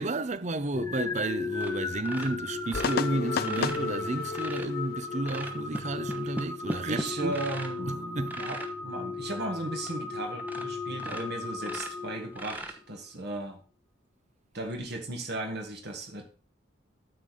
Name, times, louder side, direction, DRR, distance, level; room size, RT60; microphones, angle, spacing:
voice 1, 0.0-7.4 7.9-8.5, right 2 dB, 35° right, 0.7 m, -32 dB
sound 1, 0.7-12.7, left 4 dB, 15° left, 0.8 m, -36 dB
sound 2, 1.6-1.8 2.0-4.7 5.2-7.8 8.2-8.7 9.3-9.4 9.8-9.9 10.4-10.7 11.0-13.1 14.6-14.7, right 1 dB, 10° right, 1.0 m, -38 dB
sound 3, 2.7-6.4, left 5 dB, 50° left, 0.5 m, -33 dB
voice 2, 6.9-13.6 14.5-16.3, right 2 dB, 55° right, 1.7 m, -36 dB
13.0 x 4.3 x 4.9 m
head